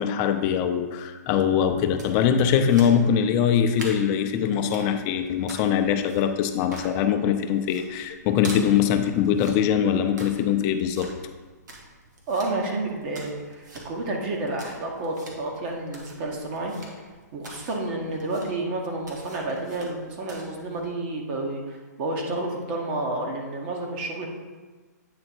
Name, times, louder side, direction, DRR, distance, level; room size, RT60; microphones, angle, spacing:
voice 1, 0.0-11.1, left 8 dB, 30° left, 7 dB, 0.6 m, -22 dB
sound 1, 1.9-20.9, right 1 dB, 85° right, 1.8 m, -46 dB
voice 2, 12.3-24.3, right 2 dB, 40° right, 0 dB, 1.2 m, -30 dB
8.7 x 3.7 x 4.5 m, 1.4 s
hypercardioid pair, 140°, 10 cm